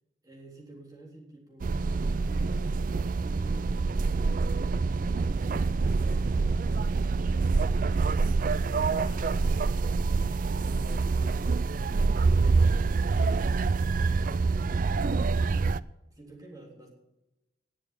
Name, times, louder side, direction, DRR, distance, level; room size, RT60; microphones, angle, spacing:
voice 1, 0.2-2.5 3.2-5.7 5.9-8.3 11.0-11.3 16.0-16.9, right 1 dB, 20° right, -2 dB, 3.5 m, -51 dB
sound 1, 1.6-15.8, right 4 dB, 45° right, 0.4 m, -26 dB
voice 2, 8.9-9.9 10.3-11.4, left 2 dB, 30° left, 2 dB, 1.6 m, -49 dB
19.0 x 7.1 x 7.4 m, 0.97 s
head